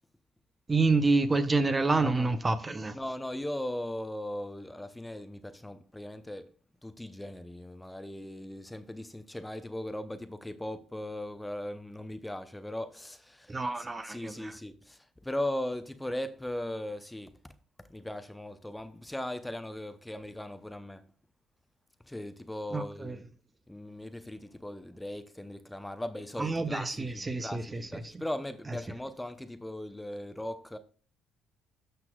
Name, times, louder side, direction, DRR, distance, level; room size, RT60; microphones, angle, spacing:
voice 1, 0.7-3.0 13.5-14.5 22.7-23.2 26.4-27.9 28.1-28.2, right 3 dB, 25° right, 0.9 m, -28 dB
voice 2, 1.9-2.4 2.9-6.5 6.8-17.5 17.8-21.1 22.1-23.2 23.7-30.8, left 1 dB, 10° left, 0.7 m, -38 dB
12.0 x 6.0 x 2.3 m
hypercardioid pair, 60°, 0 cm